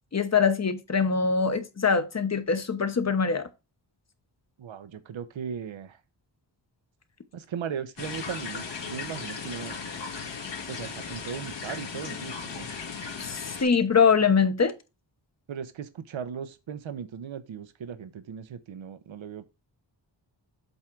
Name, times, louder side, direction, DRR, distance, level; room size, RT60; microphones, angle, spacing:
voice 1, 0.1-3.5 13.2-14.7, left 5 dB, 35° left, 1.0 m, -23 dB
voice 2, 4.6-6.0 7.3-9.8 10.7-12.7 15.5-19.4, right 7 dB, 80° right, 1.0 m, -37 dB
sound 1, 8.0-13.6, left 5 dB, 65° left, 1.8 m, -37 dB
8.1 x 3.7 x 4.6 m
wide cardioid pair, 150°, 46 cm